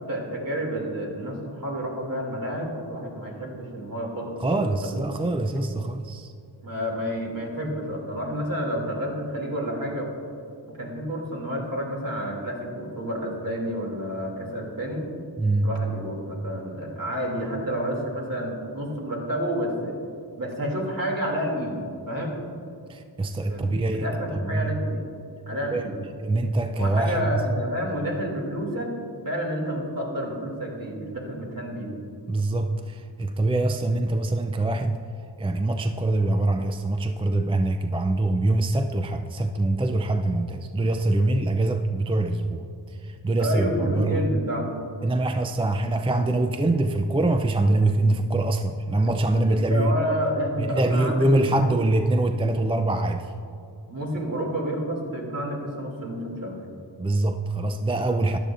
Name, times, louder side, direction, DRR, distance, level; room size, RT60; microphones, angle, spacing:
voice 1, 0.1-5.1 6.6-10.1 10.7-15.1 15.6-20.0 20.4-22.4 23.5-25.0 25.5-25.9 26.8-28.9 29.2-31.9 43.4-44.7 49.5-51.7 53.9-56.7, equal, 50° right, -2 dB, 2.6 m, -30 dB
voice 2, 4.4-6.3 15.4-15.7 22.9-24.8 25.7-27.7 32.3-35.0 35.4-44.2 45.0-50.0 50.6-53.3 57.0-58.4, right 2 dB, 15° right, 7 dB, 0.4 m, -24 dB
13.5 x 10.5 x 2.5 m, 2.4 s
wide cardioid pair, 70°, 44 cm